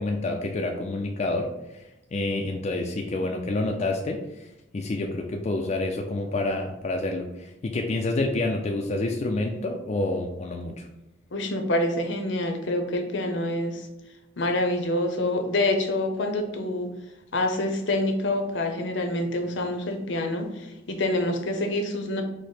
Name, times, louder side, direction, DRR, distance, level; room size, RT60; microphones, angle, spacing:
voice 1, 0.0-10.9, left 2 dB, 35° left, 2 dB, 0.3 m, -28 dB
voice 2, 11.3-13.9 14.4-16.9 17.3-22.2, left 1 dB, 70° left, 4 dB, 0.7 m, -26 dB
4.8 x 2.1 x 4.2 m, 0.94 s
head